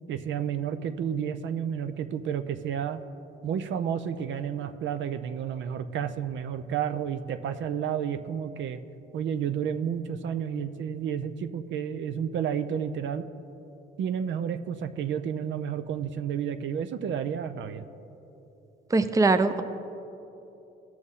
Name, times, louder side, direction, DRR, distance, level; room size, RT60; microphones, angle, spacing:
voice 1, 0.1-3.0 3.4-8.8 9.1-13.3 14.0-17.8, right 8 dB, 70° right, 9 dB, 0.5 m, -31 dB
voice 2, 18.9-19.6, right 3 dB, 15° right, 10 dB, 0.5 m, -21 dB
18.0 x 6.2 x 3.7 m, 3.0 s
cardioid pair, 90°, 20 cm